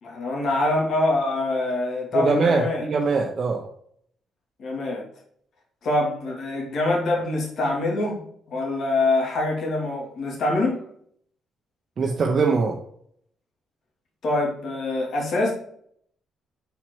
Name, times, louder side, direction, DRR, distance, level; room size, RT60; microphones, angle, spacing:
voice 1, 0.0-2.8 4.6-5.0 5.8-8.2 8.5-10.8 14.2-15.5, left 2 dB, 60° left, -1 dB, 2.6 m, -24 dB
voice 2, 2.1-3.7 12.0-12.8, right 4 dB, 45° right, 0 dB, 0.9 m, -22 dB
5.8 x 4.4 x 4.5 m, 0.66 s
cardioid pair, 90°, 0 cm